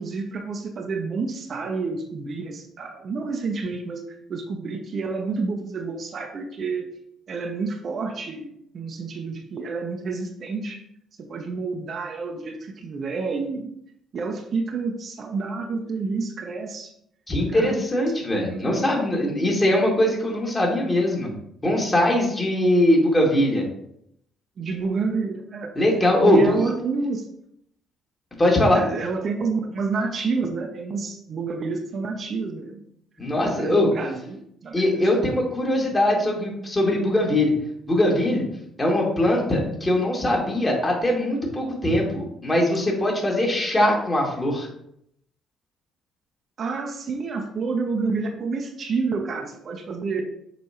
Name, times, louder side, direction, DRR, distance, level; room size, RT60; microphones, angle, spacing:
voice 1, 0.0-4.0 4.3-6.9 7.3-10.8 11.2-13.7 14.1-16.9 17.5-17.8 18.5-19.0 24.6-25.7 26.2-27.3 28.7-32.8 33.6-35.3 46.6-50.2, right 4 dB, 45° right, 3 dB, 0.8 m, -29 dB
voice 2, 17.3-21.3 21.6-23.6 25.8-26.7 28.4-28.8 33.2-33.9 34.7-37.5 37.9-38.4 38.8-44.7, left 1 dB, 25° left, -1 dB, 2.3 m, -21 dB
6.6 x 5.1 x 3.0 m, 0.73 s
figure-of-eight pair, 45°, 0 cm